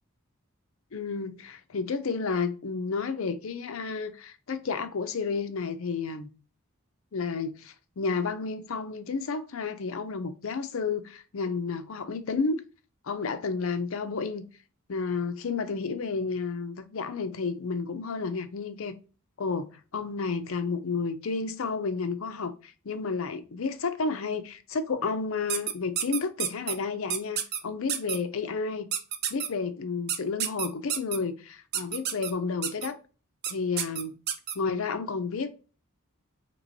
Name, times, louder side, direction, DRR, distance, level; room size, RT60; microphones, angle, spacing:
voice 1, 0.9-6.3 7.1-12.6 13.0-14.4 14.9-19.0 19.4-28.9 29.3-33.0 33.5-34.1 34.5-35.5, left 4 dB, 65° left, 0.5 m, -31 dB
sound 1, 25.5-26.7 27.1-27.6 27.9-28.2 28.9-29.5 30.1-31.2 31.7-32.3 32.6-32.9 33.4-33.5 33.8-34.5, right 9 dB, 50° right, 0.5 m, -29 dB
3.0 x 2.9 x 3.9 m
head